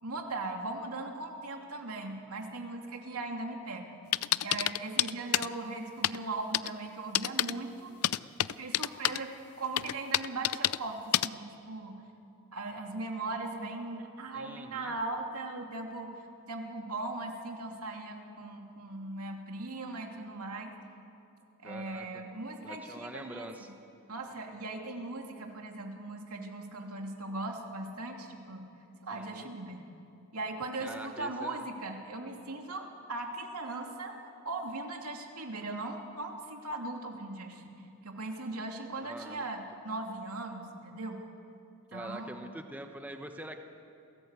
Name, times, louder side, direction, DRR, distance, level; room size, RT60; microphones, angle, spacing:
voice 1, 0.0-4.0 4.4-7.9 8.4-12.0 12.5-16.1 16.5-20.7 21.6-23.7 24.1-28.7 29.0-29.8 30.3-34.2 34.4-37.6 38.0-41.2 41.9-42.4, right 2 dB, 85° right, 2 dB, 2.8 m, -39 dB
sound 1, 4.1-5.5 6.0-6.2 6.5-6.7 7.1-7.5 8.0-9.2 9.8-10.8 11.1-11.3, left 13 dB, 75° left, 0.5 m, -27 dB
voice 2, 14.3-14.9 21.6-22.2 22.6-23.7 29.1-29.5 30.8-31.6 39.0-39.5 41.9-43.6, right 1 dB, 5° right, 5 dB, 1.0 m, -44 dB
29.0 x 17.0 x 8.3 m, 2.7 s
head